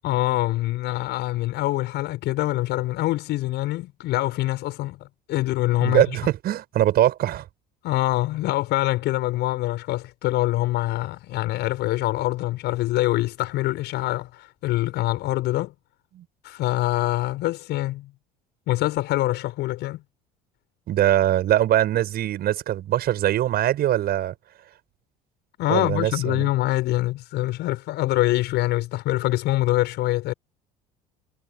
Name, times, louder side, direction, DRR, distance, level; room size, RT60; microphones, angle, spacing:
voice 1, 0.0-6.0 7.8-15.7 16.4-18.1 18.7-20.0 25.6-30.3, left 17 dB, 55° left, 6.4 m, -24 dB
voice 2, 5.8-7.4 16.1-16.2 20.9-24.3 25.7-26.5, right 12 dB, 50° right, 6.7 m, -22 dB
figure-of-eight pair, 65°, 21 cm